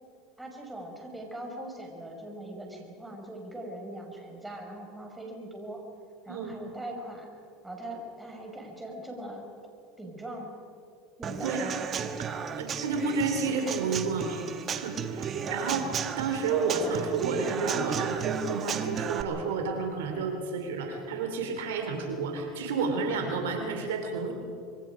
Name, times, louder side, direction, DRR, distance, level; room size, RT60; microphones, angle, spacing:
voice 1, 0.4-5.8 6.2-7.3 7.6-9.5 10.0-10.5 11.2-11.6, right 1 dB, 10° right, 1 dB, 5.8 m, -41 dB
Human voice / Acoustic guitar / Drum, 11.2-19.2, right 7 dB, 40° right, 1.5 m, -33 dB
voice 2, 11.4-11.7 12.6-14.4 14.7-24.3, right 4 dB, 85° right, 4 dB, 3.2 m, -31 dB
26.0 x 23.0 x 5.1 m, 2.5 s
supercardioid pair, 95°, 0 cm